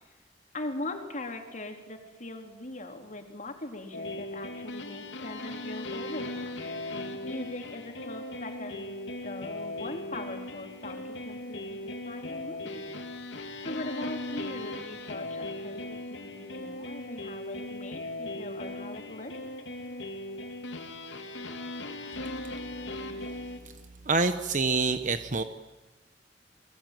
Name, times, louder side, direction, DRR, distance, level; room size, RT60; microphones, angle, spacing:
voice 1, 0.5-6.7 7.2-9.0 9.2-13.0 13.6-19.3, left 2 dB, 45° left, 4 dB, 3.8 m, -40 dB
sound 1, 3.9-23.6, left 1 dB, 85° left, 3.1 m, -38 dB
voice 2, 24.1-25.4, right 4 dB, 45° right, 9 dB, 1.1 m, -26 dB
30.0 x 21.5 x 9.4 m, 1.2 s
head